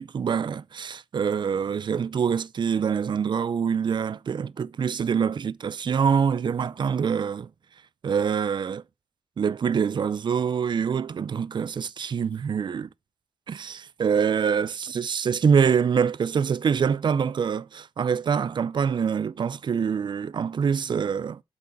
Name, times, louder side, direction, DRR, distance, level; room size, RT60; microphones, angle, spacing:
voice 1, 0.0-7.5 8.0-8.8 9.4-12.9 13.5-21.4, right 6 dB, 50° right, 0.5 m, -25 dB
7.9 x 5.8 x 3.9 m
cardioid pair, 90°, 10 cm